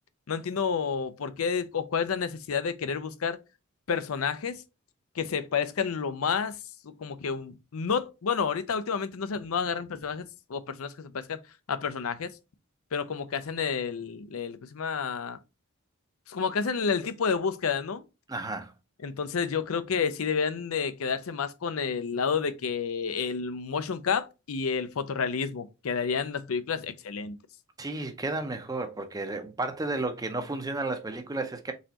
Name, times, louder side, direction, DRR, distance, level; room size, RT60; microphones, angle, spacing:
voice 1, 0.3-3.4 3.9-4.6 5.2-6.6 6.8-11.4 11.7-12.3 12.9-15.4 16.3-18.0 19.0-27.4, left 6 dB, 80° left, 0.5 m, -30 dB
voice 2, 18.3-18.7 27.8-31.7, right 2 dB, 15° right, 0.5 m, -32 dB
4.1 x 3.8 x 2.8 m
head